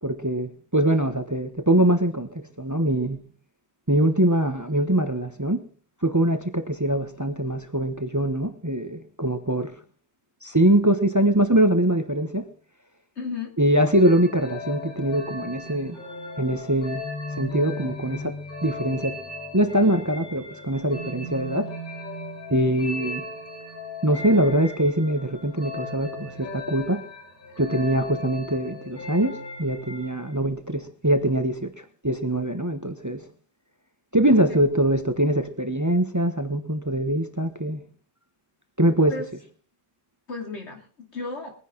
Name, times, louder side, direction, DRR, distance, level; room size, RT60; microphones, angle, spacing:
voice 1, 0.0-3.2 3.9-5.6 6.0-9.7 10.4-12.5 13.6-16.0 16.4-17.0 17.4-19.2 19.5-21.7 22.5-23.2 24.0-27.0 27.6-33.2 34.1-37.8 38.8-39.1, right 1 dB, 15° right, 0.9 m, -23 dB
voice 2, 13.2-13.5 34.3-34.6 39.0-39.3 40.3-41.5, left 4 dB, 80° left, 3.0 m, -34 dB
sound 1, 13.9-30.4, left 2 dB, 50° left, 4.7 m, -37 dB
21.5 x 10.0 x 3.8 m
omnidirectional pair, 1.1 m